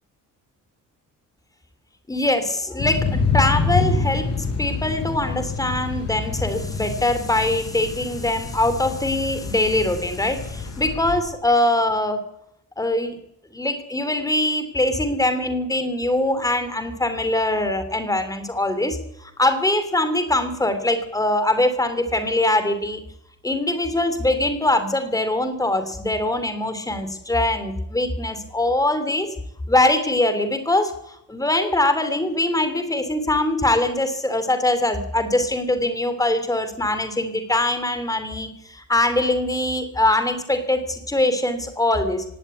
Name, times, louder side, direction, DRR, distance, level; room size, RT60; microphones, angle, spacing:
voice 1, 2.1-4.3 4.6-12.3 12.8-13.2 13.5-23.0 23.4-29.3 29.7-42.2, left 1 dB, 10° left, 10 dB, 2.7 m, -22 dB
Thunder / Rain, 2.8-11.2, left 4 dB, 45° left, 7.8 m, -27 dB
17.5 x 17.0 x 9.5 m, 0.78 s
cardioid pair, 155°, 33 cm